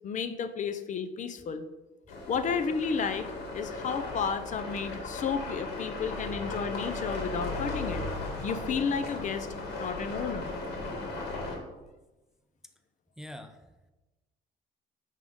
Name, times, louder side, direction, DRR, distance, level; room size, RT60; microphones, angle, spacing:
voice 1, 0.0-1.6 2.3-8.0 8.4-9.5 9.8-10.5, left 6 dB, 45° left, 10 dB, 0.7 m, -32 dB
sound 1, 2.1-11.6, left 2 dB, 80° left, 2.1 m, -36 dB
voice 2, 13.2-13.9, left 1 dB, 5° right, 7 dB, 0.5 m, -45 dB
8.7 x 3.7 x 5.4 m, 1.1 s
cardioid pair, 110°, 17 cm